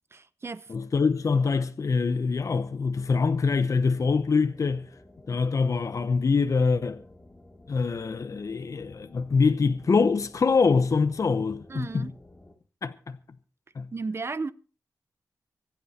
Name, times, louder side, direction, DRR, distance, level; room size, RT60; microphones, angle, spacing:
voice 1, 0.1-0.7 11.7-12.1 13.9-14.5, right 4 dB, 40° right, 0.8 m, -34 dB
voice 2, 0.7-4.9 5.3-7.0 7.7-12.1 12.8-13.2 13.7-13.9, left 4 dB, 55° left, 0.9 m, -24 dB
sound 1, 2.4-12.6, left 1 dB, 20° left, 2.6 m, -54 dB
25.0 x 8.4 x 4.3 m
wide cardioid pair, 100°, 7 cm